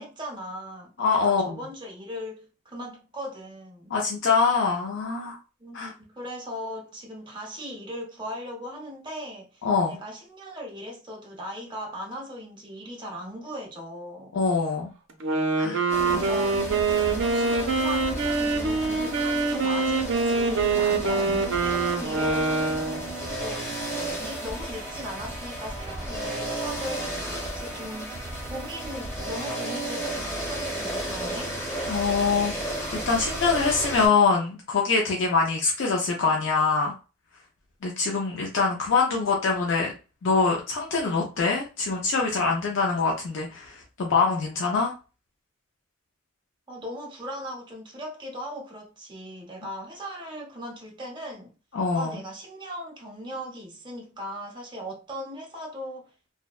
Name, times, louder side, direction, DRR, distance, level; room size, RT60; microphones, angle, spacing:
voice 1, 0.0-3.9 5.6-14.4 16.0-16.8 17.3-22.7 23.4-23.8 24.2-31.5 46.7-51.5 51.9-56.1, equal, 25° right, 0.7 m, -38 dB
voice 2, 1.0-1.6 3.9-5.4 5.7-5.9 9.6-10.0 14.3-14.9 15.6-15.8 16.1-16.2 21.1-21.4 31.9-36.9 37.8-39.9 40.2-44.9 51.7-52.2, left 4 dB, 65° left, 0.4 m, -24 dB
Wind instrument woodwind instrument, 15.1-23.1, right 3 dB, 65° right, 0.5 m, -25 dB
sound 1, 15.9-34.1, right 1 dB, 10° left, 0.8 m, -33 dB
2.6 x 2.1 x 2.3 m
head